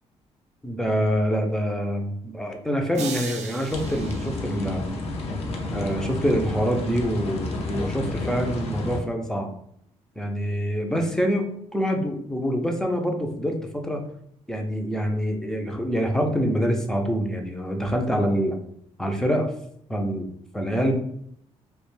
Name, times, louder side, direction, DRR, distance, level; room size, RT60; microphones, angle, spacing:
voice 1, 0.6-4.8 5.7-9.5 10.2-14.0 14.5-18.6 19.0-19.5 19.9-20.3 20.5-21.0, equal, 5° left, 2 dB, 0.4 m, -25 dB
sound 1, 2.9-5.2, right 6 dB, 70° right, 0.4 m, -38 dB
sound 2, 3.7-9.0, left 2 dB, 60° left, 0.5 m, -30 dB
2.3 x 2.2 x 3.1 m, 0.67 s
cardioid pair, 100°, 12 cm